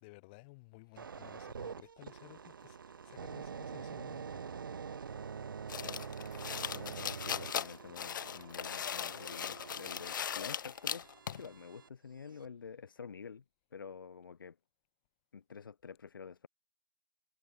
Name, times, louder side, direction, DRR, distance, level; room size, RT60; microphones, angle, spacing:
voice 1, 0.0-4.6, left 26 dB, 25° left, 1.2 m, -56 dB
sound 1, 1.0-11.9 12.4-12.7, right 6 dB, 80° right, 2.5 m, -46 dB
voice 2, 5.7-6.1 6.7-13.4 13.7-14.6 15.3-16.5, left 6 dB, 85° left, 2.5 m, -49 dB
sound 2, 5.7-11.5, left 8 dB, 70° left, 0.4 m, -39 dB
hypercardioid pair, 165°, 11 cm